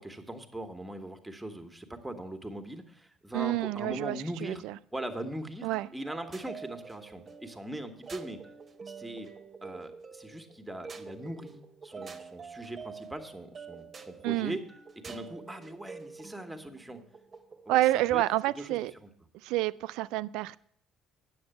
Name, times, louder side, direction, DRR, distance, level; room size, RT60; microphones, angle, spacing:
voice 1, 0.0-4.6 4.9-8.4 8.8-9.3 9.6-14.6 14.9-17.0 17.6-18.2 18.5-19.1, right 1 dB, 5° right, 1.5 m, -40 dB
voice 2, 3.3-4.7 5.6-5.9 14.2-14.6 17.7-18.9 19.4-20.6, right 16 dB, 65° right, 0.3 m, -28 dB
sound 1, 5.7-17.9, right 5 dB, 35° right, 1.1 m, -47 dB
9.4 x 6.9 x 6.8 m
figure-of-eight pair, 50°, 0 cm